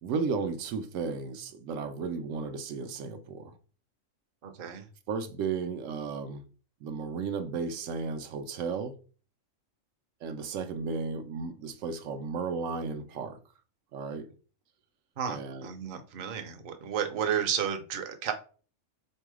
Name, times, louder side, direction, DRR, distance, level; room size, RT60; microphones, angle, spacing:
voice 1, 0.0-3.5 5.1-6.4 6.8-9.0 10.2-13.4 13.9-14.3 15.3-15.7, right 5 dB, 80° right, 0.9 m, -34 dB
voice 2, 4.4-4.9 15.2-18.3, right 8 dB, 50° right, 0.7 m, -32 dB
3.7 x 2.7 x 4.7 m
omnidirectional pair, 1.4 m